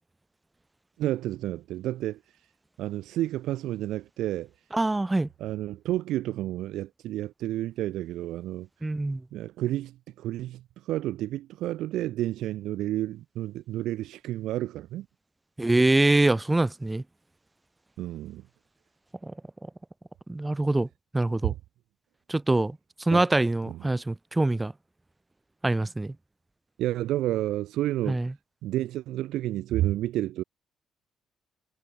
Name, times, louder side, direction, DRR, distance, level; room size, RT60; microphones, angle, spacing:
voice 1, 1.0-2.2 2.8-4.5 5.4-8.7 9.3-15.1 18.0-18.4 21.4-21.5 23.1-23.2 23.7-23.8 26.8-28.2 28.6-30.4, right 14 dB, 85° right, 4.9 m, -30 dB
voice 2, 4.7-5.3 8.8-9.2 15.6-17.0 19.2-19.3 20.3-20.9 21.1-21.5 22.3-24.7 25.6-26.1 28.1-28.3, right 2 dB, 15° right, 3.9 m, -24 dB
cardioid pair, 90°, 0 cm